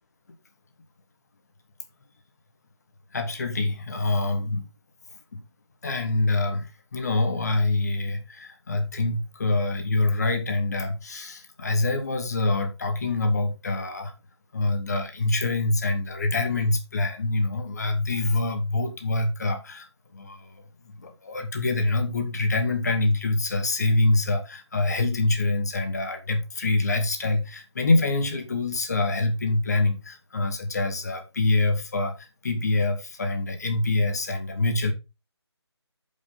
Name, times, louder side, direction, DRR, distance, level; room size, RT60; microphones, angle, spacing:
voice 1, 3.1-4.6 5.3-5.4 5.8-14.1 14.5-20.6 21.0-34.9, left 2 dB, 35° left, 1.2 m, -25 dB
9.2 x 5.4 x 4.1 m
figure-of-eight pair, 155°, 14 cm